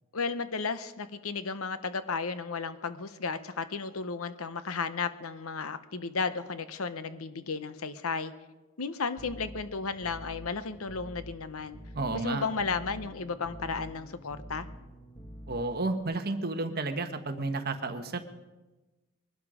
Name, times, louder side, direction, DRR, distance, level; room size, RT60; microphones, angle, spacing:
voice 1, 0.1-8.3 8.8-11.8 12.1-14.7, left 4 dB, 75° left, 12 dB, 0.9 m, -34 dB
sound 1, 9.2-16.0, equal, 15° left, 1.4 m, -47 dB
voice 2, 11.9-12.4 15.5-18.2, right 3 dB, 45° right, 7 dB, 1.2 m, -32 dB
21.5 x 12.0 x 5.0 m, 1.1 s
head